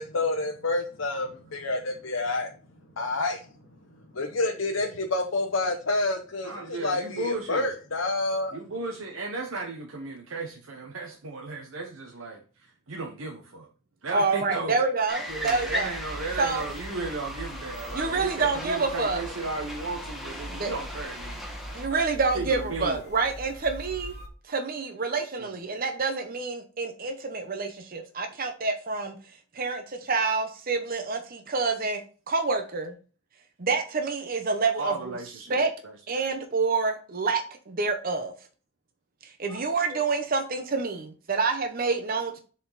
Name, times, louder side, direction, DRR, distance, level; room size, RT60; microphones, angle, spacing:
voice 1, 0.0-2.5 3.0-3.4 4.1-8.6, left 2 dB, 80° left, 2 dB, 0.9 m, -28 dB
voice 2, 6.4-7.7 8.5-13.7 14.0-14.8 15.3-21.4 21.9-22.1 22.3-23.0 25.4-25.6 34.8-36.0 39.5-39.7, right 2 dB, 90° right, 1 dB, 1.1 m, -35 dB
voice 3, 14.1-15.9 16.4-16.6 17.9-19.2 20.6-20.7 21.7-24.1 24.5-29.2 29.5-32.0 32.3-32.9 33.6-35.1 35.5-35.7 36.1-38.3 39.2-42.4, right 4 dB, 45° right, 6 dB, 0.8 m, -27 dB
sound 1, 15.1-21.9, left 1 dB, ahead, 1.3 m, -38 dB
sound 2, 15.3-24.3, equal, 50° left, 1.3 m, -41 dB
7.4 x 4.3 x 4.0 m, 0.37 s
head